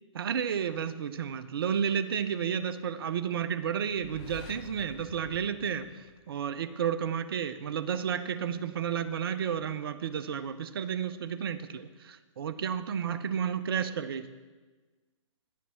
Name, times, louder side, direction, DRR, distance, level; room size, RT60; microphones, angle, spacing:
voice 1, 0.1-5.9 6.3-14.3, right 8 dB, 45° right, 11 dB, 0.6 m, -32 dB
sound 1, 3.9-6.7, left 6 dB, 15° left, 0.4 m, -49 dB
10.5 x 5.9 x 6.0 m, 1.3 s
figure-of-eight pair, 130°, 17 cm